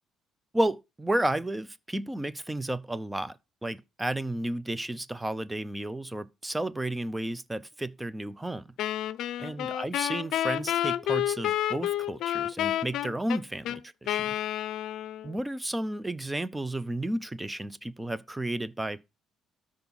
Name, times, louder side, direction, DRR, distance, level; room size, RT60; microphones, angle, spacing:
voice 1, 0.5-8.6 9.4-14.4 15.2-19.1, right 1 dB, 10° right, 0.5 m, -32 dB
Wind instrument woodwind instrument, 8.8-15.4, left 12 dB, 65° left, 0.5 m, -30 dB
13.0 x 4.9 x 4.0 m
cardioid pair, 140°, 0 cm